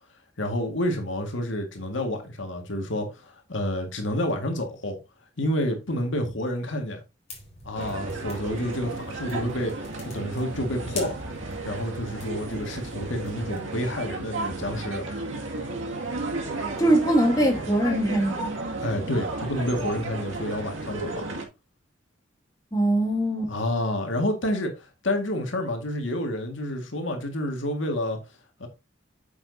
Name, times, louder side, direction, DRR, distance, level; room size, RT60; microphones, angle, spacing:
voice 1, 0.4-5.0 5.4-7.0 7.7-9.7 10.1-11.2 11.6-15.1 18.8-21.3 23.5-28.2 28.6-28.7, left 1 dB, 75° left, 1.9 m, -29 dB
sound 1, 7.3-13.6, left 2 dB, 35° left, 4.2 m, -43 dB
sound 2, 7.7-21.4, right 3 dB, 90° right, 2.2 m, -33 dB
voice 2, 16.8-18.5 22.7-23.5, right 1 dB, 20° left, 2.2 m, -22 dB
8.9 x 7.2 x 2.7 m
head